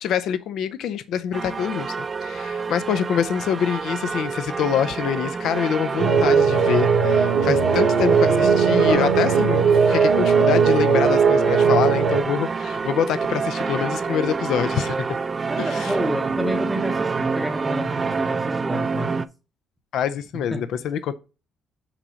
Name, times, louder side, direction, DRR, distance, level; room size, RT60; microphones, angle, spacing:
voice 1, 0.0-1.9 2.2-15.1 15.6-15.9 19.9-21.1, left 8 dB, 75° left, 0.5 m, -25 dB
sound 1, 1.3-19.3, right 5 dB, 30° right, 0.3 m, -28 dB
sound 2, 6.0-12.2, right 5 dB, 80° right, 1.0 m, -18 dB
voice 2, 7.3-7.7 15.4-19.2 20.3-20.7, equal, ahead, 0.7 m, -30 dB
5.9 x 4.1 x 4.9 m
cardioid pair, 135°, 0 cm